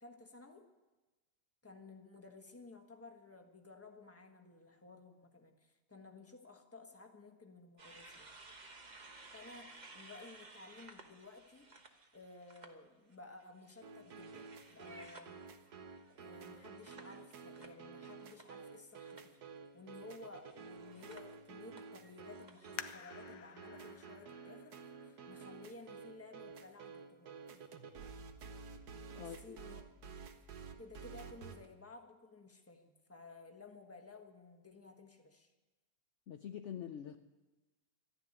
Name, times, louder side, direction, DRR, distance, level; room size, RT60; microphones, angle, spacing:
voice 1, 0.0-0.7 1.6-8.3 9.3-11.7 12.1-15.4 16.1-19.4 19.7-27.4 29.2-29.8 30.8-35.5, left 3 dB, 10° left, 3 dB, 1.2 m, -55 dB
sound 1, 7.8-12.7 13.1-18.8 19.0-19.4 20.3-23.0, right 3 dB, 30° right, 1.1 m, -58 dB
Teaser Background Music, 13.8-31.7, right 5 dB, 60° right, 1.5 m, -51 dB
sound 2, 22.8-26.1 26.7-26.8 27.5-27.8 28.2-28.3, left 10 dB, 90° left, 1.4 m, -51 dB
voice 2, 29.1-29.6 36.3-37.2, left 9 dB, 70° left, 8 dB, 0.7 m, -45 dB
13.5 x 10.5 x 9.8 m, 1.2 s
omnidirectional pair, 1.9 m